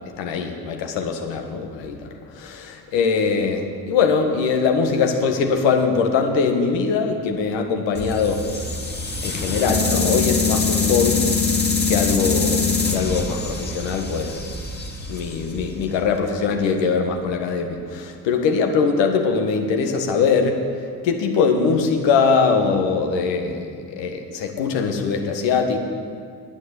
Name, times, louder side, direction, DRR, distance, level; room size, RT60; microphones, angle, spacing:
voice 1, 0.2-8.4 9.2-11.3 11.9-14.4 15.1-20.6 21.0-25.8, left 5 dB, 70° left, 5 dB, 1.5 m, -22 dB
sound 1, 7.9-16.0, left 4 dB, 20° left, 2.1 m, -23 dB
11.0 x 9.6 x 8.2 m, 2.2 s
hypercardioid pair, 45°, 46 cm